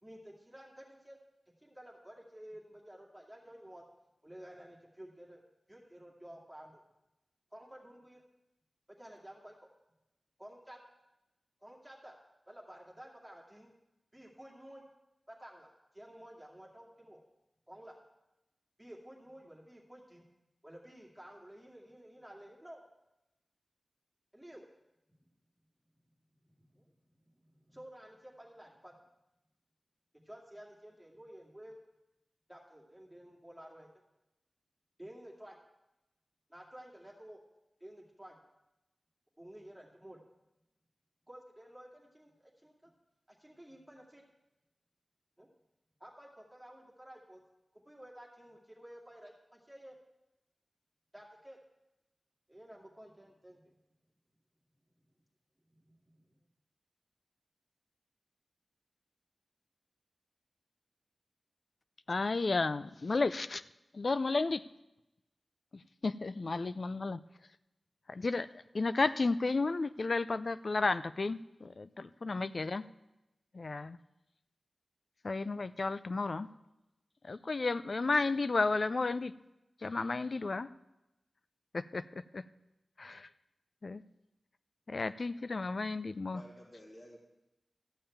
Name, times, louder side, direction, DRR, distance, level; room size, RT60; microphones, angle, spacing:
voice 1, 0.0-1.2 1.6-3.8 4.2-5.4 5.7-6.8 7.5-8.2 8.9-9.7 10.4-10.8 11.6-12.2 12.5-13.7 14.1-14.8 15.3-17.2 17.7-18.0 18.8-20.3 20.6-22.8 24.3-24.6 26.5-26.9 27.2-28.9 30.2-31.8 32.5-33.9 35.0-35.6 36.5-37.4 37.8-38.4 39.4-40.2 41.3-42.9 43.3-44.2 45.4-45.5 46.0-47.4 47.7-50.0 51.1-51.6 52.5-53.7 55.7-56.3, right 1 dB, 5° right, -3 dB, 2.2 m, -52 dB
voice 2, 62.1-63.6 63.9-64.6 65.7-67.2 68.1-72.8 73.5-74.0 75.2-76.5 77.2-79.3 79.8-80.7 81.7-82.4 83.0-83.3 83.8-84.0 84.9-86.4, left 3 dB, 55° left, 14 dB, 0.4 m, -33 dB
voice 3, 86.0-87.2, equal, 35° left, -2 dB, 3.0 m, -53 dB
13.5 x 5.5 x 8.7 m, 0.94 s
wide cardioid pair, 70°, 0 cm